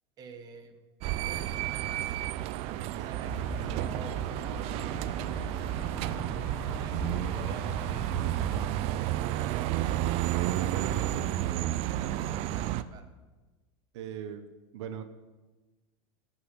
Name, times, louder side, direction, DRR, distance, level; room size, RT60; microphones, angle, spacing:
voice 1, 0.2-0.8 1.2-2.2 2.6-5.0 6.5-9.6 10.8-13.1, right 5 dB, 25° right, 6 dB, 1.4 m, -50 dB
sound 1, 1.0-12.8, right 13 dB, 45° right, 0.6 m, -31 dB
sound 2, 3.2-8.7, left 4 dB, 10° left, 0.5 m, -42 dB
voice 2, 10.7-11.2 13.9-14.4 14.7-15.0, right 9 dB, 75° right, 8 dB, 1.1 m, -39 dB
14.5 x 6.1 x 8.2 m, 1.2 s
supercardioid pair, 150°, 15 cm